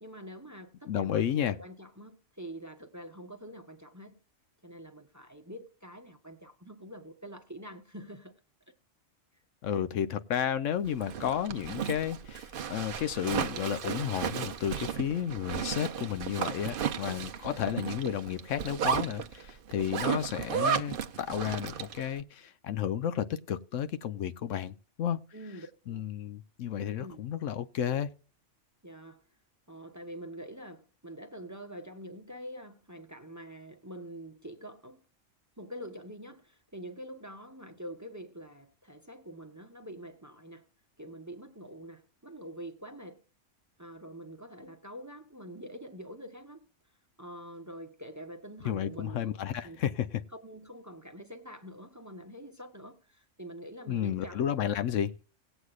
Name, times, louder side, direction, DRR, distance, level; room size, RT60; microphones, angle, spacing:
voice 1, 0.0-4.2 4.6-8.4 25.3-26.1 27.0-27.3 28.8-29.2 29.7-35.0 35.6-40.7 41.0-43.2 43.8-46.7 47.2-54.5, equal, 15° right, 0.8 m, -46 dB
voice 2, 0.9-1.5 9.6-25.2 25.9-28.1 48.6-50.1 53.9-55.1, left 9 dB, 75° left, 1.0 m, -32 dB
Zipper (clothing), 10.9-22.1, right 8 dB, 55° right, 0.7 m, -34 dB
19.0 x 8.0 x 2.4 m
omnidirectional pair, 1.3 m